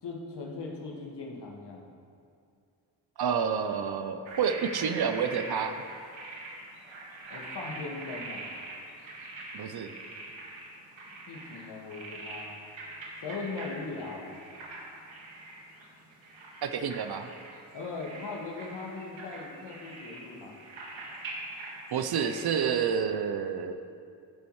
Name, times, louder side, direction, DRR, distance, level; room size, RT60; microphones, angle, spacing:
voice 1, 0.0-1.9 7.3-8.5 11.3-12.6 13.2-14.3 17.7-20.6, left 3 dB, 60° left, -1 dB, 1.9 m, -39 dB
voice 2, 3.2-5.8 9.5-9.9 16.6-17.3 21.9-23.7, right 7 dB, 55° right, 8 dB, 0.7 m, -29 dB
sound 1, 4.3-22.8, right 2 dB, 70° right, 1.9 m, -44 dB
15.0 x 6.9 x 3.2 m, 2.4 s
supercardioid pair, 50°, 47 cm